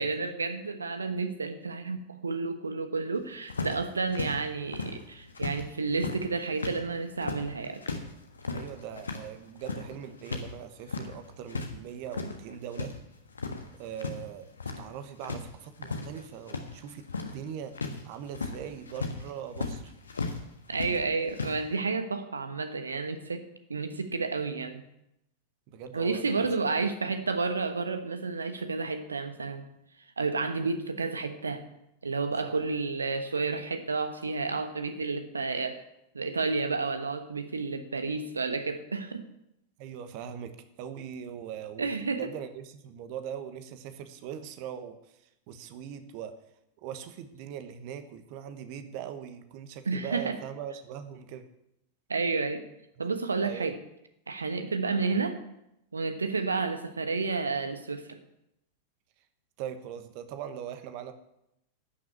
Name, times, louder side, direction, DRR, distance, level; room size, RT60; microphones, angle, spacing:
voice 1, 0.0-7.8 20.7-23.4 23.7-24.8 25.9-29.7 30.2-31.6 32.0-35.8 36.1-39.2 41.8-42.2 49.9-50.4 52.1-52.7 53.0-53.8 54.3-55.4 55.9-58.2, right 4 dB, 75° right, 9 dB, 1.2 m, -31 dB
sound 1, 3.5-5.6 5.9-10.5 10.8-11.7 12.0-12.9 13.3-14.2 14.4-14.9 15.2-20.4 20.7-21.6, left 4 dB, 75° left, 1.4 m, -36 dB
voice 2, 8.5-13.0 13.8-14.5 14.8-17.8 18.0-19.9 25.7-26.5 32.4-32.6 39.8-45.2 45.5-46.4 46.8-51.4 53.4-53.7 59.6-61.1, right 9 dB, 45° right, 10 dB, 1.2 m, -41 dB
11.5 x 6.2 x 8.5 m, 0.83 s
figure-of-eight pair, 90°, 0 cm